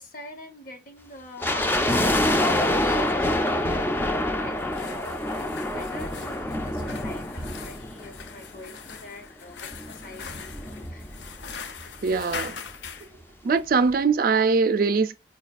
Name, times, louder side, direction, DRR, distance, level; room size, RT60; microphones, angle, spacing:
voice 1, 0.0-11.1, left 1 dB, 50° left, 0.9 m, -43 dB
sound 1, 1.4-8.7 8.9-9.0 9.7-11.5 11.8-11.9 12.1-12.4 12.9-13.0, left 1 dB, 10° left, 0.4 m, -26 dB
sound 2, 4.6-13.1, left 6 dB, 80° left, 0.5 m, -41 dB
voice 2, 12.0-12.6 13.4-15.2, right 4 dB, 55° right, 0.4 m, -22 dB
4.7 x 2.3 x 2.4 m
head